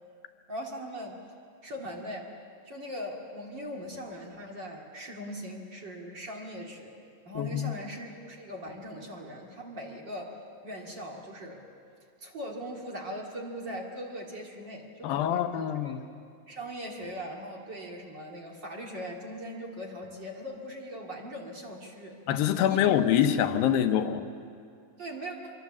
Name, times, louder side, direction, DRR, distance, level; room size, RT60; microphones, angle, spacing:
voice 1, 0.5-1.2 1.6-2.3 2.7-6.9 7.2-10.3 10.6-11.6 12.2-15.9 16.5-22.2 22.5-23.0 25.0-25.5, equal, 35° right, -1 dB, 2.6 m, -40 dB
voice 2, 7.4-7.8 15.0-16.0 22.3-24.2, left 10 dB, 90° left, 8 dB, 2.8 m, -25 dB
25.0 x 23.5 x 7.4 m, 2.4 s
omnidirectional pair, 4.0 m